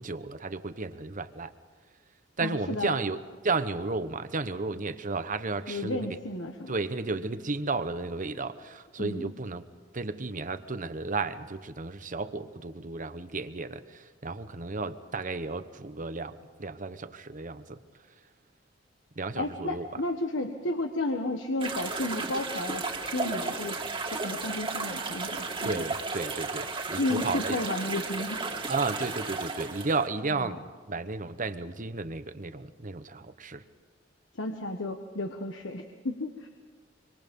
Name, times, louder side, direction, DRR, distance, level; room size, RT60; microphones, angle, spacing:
voice 1, 0.0-1.5 2.4-3.2 3.4-6.1 6.7-9.6 9.9-17.8 19.2-19.9 25.6-27.6 28.7-33.6, right 3 dB, 45° right, 11 dB, 1.0 m, -33 dB
voice 2, 2.4-3.0 5.7-6.7 9.0-9.3 19.4-23.8 24.1-25.8 26.9-28.4 30.3-30.6 34.3-36.5, left 2 dB, 75° left, 4 dB, 1.4 m, -33 dB
sound 1, 21.6-30.1, right 3 dB, 30° right, 2.2 m, -34 dB
26.0 x 25.5 x 5.4 m, 1.5 s
head